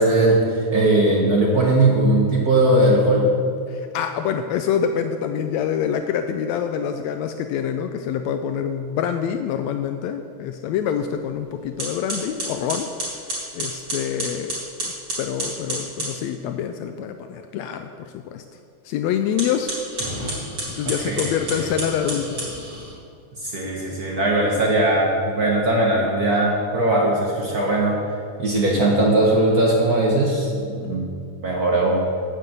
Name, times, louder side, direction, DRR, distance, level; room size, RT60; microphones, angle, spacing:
voice 1, 0.0-3.3 20.8-21.7 23.4-28.0 28.4-31.1 31.4-32.0, right 1 dB, 70° right, -2 dB, 0.8 m, -19 dB
voice 2, 3.7-12.9 13.5-14.9 15.2-18.4 18.8-19.8 20.8-22.5, left 8 dB, 85° left, 7 dB, 1.5 m, -26 dB
sound 1, 11.2-11.4 11.8-16.2 19.3-22.9, right 1 dB, 40° right, 4.4 m, -30 dB
9.2 x 7.6 x 8.0 m, 2.3 s
omnidirectional pair, 3.6 m